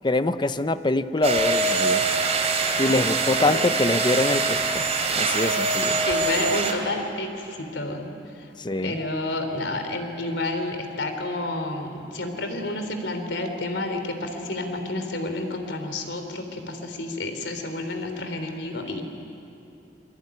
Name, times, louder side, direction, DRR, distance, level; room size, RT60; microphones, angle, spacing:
voice 1, 0.0-2.1 2.8-4.9 5.2-6.0 8.6-9.0, left 2 dB, 25° left, 11 dB, 0.8 m, -24 dB
sound 1, 1.2-6.7, right 3 dB, 40° right, 3.2 m, -23 dB
voice 2, 6.1-8.5 8.8-19.0, left 2 dB, 85° left, 6 dB, 3.5 m, -30 dB
27.5 x 23.0 x 9.5 m, 2.9 s
head